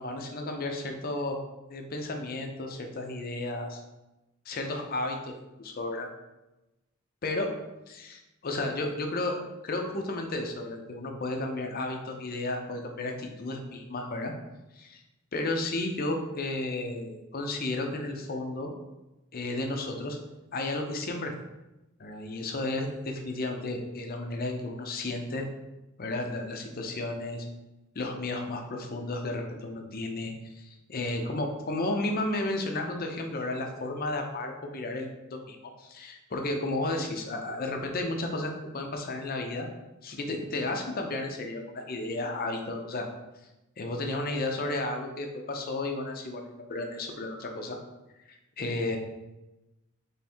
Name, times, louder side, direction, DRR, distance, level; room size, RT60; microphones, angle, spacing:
voice 1, 0.0-1.4 1.7-3.8 4.5-6.1 7.2-7.5 7.9-9.4 9.6-14.3 14.7-15.0 15.3-18.7 19.3-20.2 20.5-21.3 22.0-25.5 26.0-27.5 27.9-39.7 40.0-43.1 43.8-47.8 48.3-49.0, left 2 dB, 45° left, 3 dB, 0.6 m, -33 dB
3.5 x 3.5 x 4.3 m, 1.0 s
head